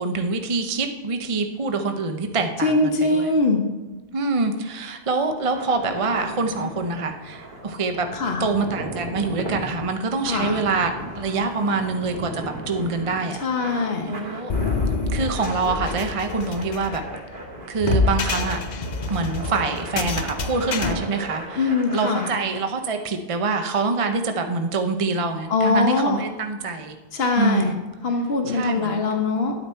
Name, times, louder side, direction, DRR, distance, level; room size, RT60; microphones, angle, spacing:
voice 1, 0.0-3.3 4.1-8.1 8.4-14.5 15.1-17.0 17.7-18.6 19.1-27.0 27.4-27.8 28.5-29.0, right 3 dB, 35° right, 6 dB, 0.7 m, -25 dB
voice 2, 2.6-3.6 8.1-8.5 10.2-10.6 13.4-14.2 21.6-22.3 25.5-26.2 27.1-27.7 28.0-29.5, left 3 dB, 70° left, 4 dB, 1.4 m, -22 dB
sound 1, 5.3-22.3, right 1 dB, 50° right, 2.2 m, -36 dB
sound 2, 14.5-20.9, left 3 dB, 45° left, 0.8 m, -26 dB
11.5 x 8.8 x 4.4 m, 1.2 s
omnidirectional pair, 1.1 m